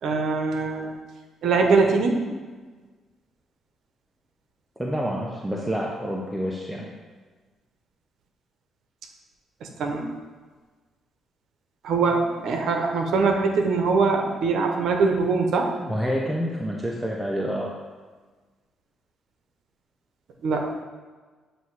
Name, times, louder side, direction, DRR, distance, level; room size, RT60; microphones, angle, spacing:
voice 1, 0.0-0.9 1.4-2.2 9.6-10.1 11.8-15.7 20.4-20.7, right 4 dB, 70° right, 3 dB, 0.8 m, -22 dB
voice 2, 4.8-6.9 15.8-17.7, equal, 5° right, -3 dB, 0.7 m, -28 dB
7.8 x 2.7 x 4.7 m, 1.4 s
cardioid pair, 90°, 0 cm